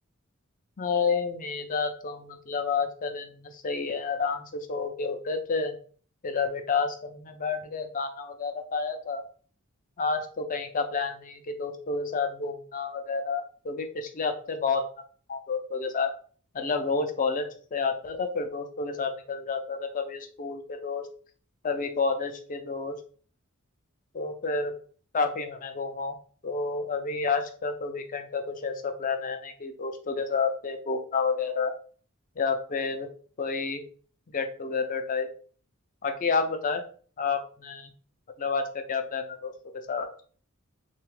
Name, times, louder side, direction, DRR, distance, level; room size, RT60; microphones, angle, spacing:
voice 1, 0.8-5.8 6.2-9.2 10.0-14.8 15.3-16.1 16.5-21.0 21.6-23.0 24.1-24.7 25.1-26.2 26.4-31.7 32.4-33.1 33.4-33.8 34.3-35.3 36.0-36.8 37.2-37.9 38.4-39.5 39.9-40.3, left 4 dB, 40° left, 6 dB, 0.5 m, -30 dB
3.3 x 2.3 x 3.2 m, 0.43 s
head